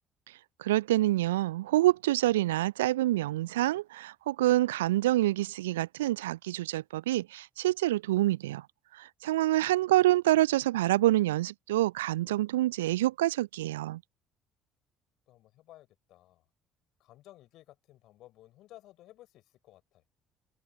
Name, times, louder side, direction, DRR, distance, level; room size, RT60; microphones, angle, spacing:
voice 1, 0.6-8.6 9.0-14.0, right 15 dB, 75° right, 0.5 m, -27 dB
voice 2, 15.3-16.4 17.0-20.0, left 15 dB, 60° left, 6.1 m, -56 dB
figure-of-eight pair, 50°, 0 cm